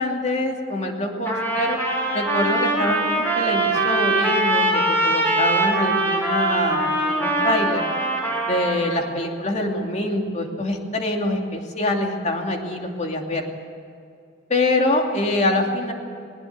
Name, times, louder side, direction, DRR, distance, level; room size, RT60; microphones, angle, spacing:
voice 1, 0.0-1.8 2.1-7.8 8.4-13.5 14.5-15.9, left 1 dB, 40° left, 2 dB, 2.7 m, -24 dB
Trumpet, 1.2-9.0, right 2 dB, 15° left, 6.9 m, -22 dB
20.0 x 19.0 x 8.3 m, 2.5 s
head